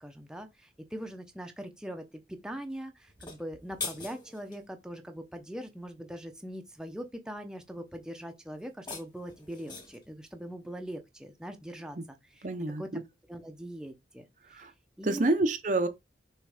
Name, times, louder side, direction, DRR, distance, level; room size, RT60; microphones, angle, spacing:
voice 1, 0.0-12.5 12.8-12.9 13.3-14.2 14.5-14.7 15.0-15.2, equal, 5° right, 0.8 m, -42 dB
sound 1, 3.1-4.6 8.6-10.1, left 4 dB, 25° left, 1.9 m, -42 dB
voice 2, 12.4-13.0 14.5-14.7 15.0-15.9, right 2 dB, 45° right, 0.7 m, -28 dB
6.6 x 3.1 x 4.9 m
head